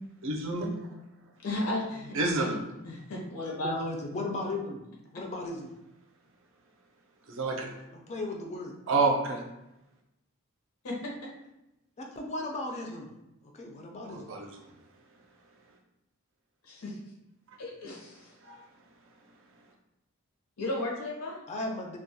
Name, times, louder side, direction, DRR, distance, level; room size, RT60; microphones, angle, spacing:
voice 1, 0.2-0.8 2.2-2.6 7.3-7.7 8.9-9.4 14.1-14.5 18.5-18.6, right 3 dB, 60° right, 1 dB, 0.4 m, -28 dB
voice 2, 1.4-3.7 10.8-11.1 16.6-17.0 17.6-18.3 20.6-21.4, left 1 dB, 85° left, -2 dB, 0.7 m, -35 dB
voice 3, 3.6-5.7 7.9-8.7 12.0-13.1 13.5-14.3 21.5-22.0, left 2 dB, 30° left, 1 dB, 0.3 m, -36 dB
2.2 x 2.1 x 2.7 m, 0.90 s
head